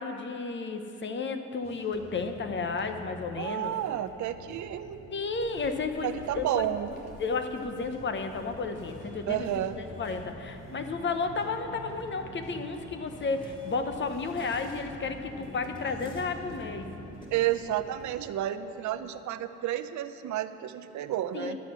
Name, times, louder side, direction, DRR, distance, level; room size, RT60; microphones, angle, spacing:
voice 1, 0.0-3.7 5.1-6.7 7.2-9.5 9.8-16.9 21.3-21.5, left 4 dB, 40° left, 7 dB, 1.0 m, -32 dB
sound 1, 1.6-18.2, left 2 dB, 60° left, 1.3 m, -50 dB
voice 2, 3.4-5.0 6.0-6.9 9.3-9.8 17.3-21.6, right 12 dB, 70° right, 11 dB, 0.6 m, -31 dB
sound 2, 5.3-10.3, equal, 85° left, 2.3 m, -53 dB
sound 3, 8.3-17.3, right 1 dB, 15° left, 2.8 m, -46 dB
12.0 x 8.4 x 6.1 m, 2.9 s
cardioid pair, 90°, 30 cm